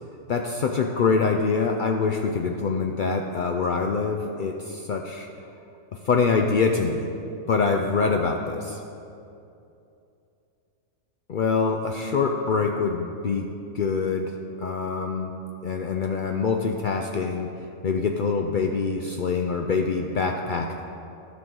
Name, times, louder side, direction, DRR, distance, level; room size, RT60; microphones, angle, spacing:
voice 1, 0.3-5.3 6.0-7.1 7.5-8.8 11.3-13.5 13.7-14.3 14.6-15.3 15.6-17.5 17.8-20.8, left 4 dB, 75° left, 3 dB, 0.4 m, -25 dB
13.0 x 6.1 x 3.8 m, 2.7 s
omnidirectional pair, 1.4 m